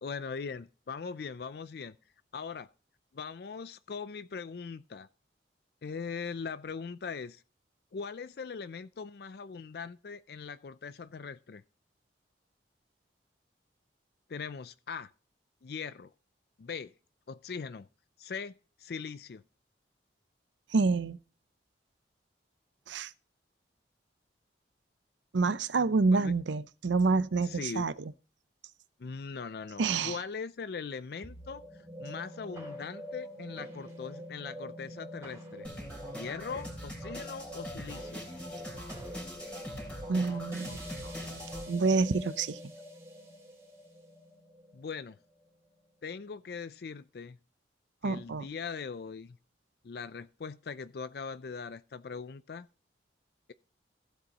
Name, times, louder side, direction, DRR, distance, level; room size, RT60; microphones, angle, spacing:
voice 1, 0.0-2.0 2.3-2.7 3.1-5.1 5.8-7.4 7.9-11.6 14.3-15.1 15.6-16.1 16.6-16.9 17.3-17.9 18.2-19.4 26.1-26.3 27.4-27.9 29.0-31.6 32.0-35.7 36.1-38.2 44.7-45.2 46.0-47.4 48.0-49.4 49.8-52.7, left 5 dB, 55° left, 0.4 m, -40 dB
voice 2, 20.7-21.2 22.9-23.1 25.3-27.9 29.8-30.2 40.1-40.8 41.7-42.6 48.0-48.4, right 4 dB, 80° right, 0.6 m, -27 dB
sound 1, 31.2-45.7, equal, 15° right, 2.6 m, -45 dB
sound 2, 35.6-41.6, equal, 5° left, 3.1 m, -43 dB
15.0 x 8.0 x 2.9 m
head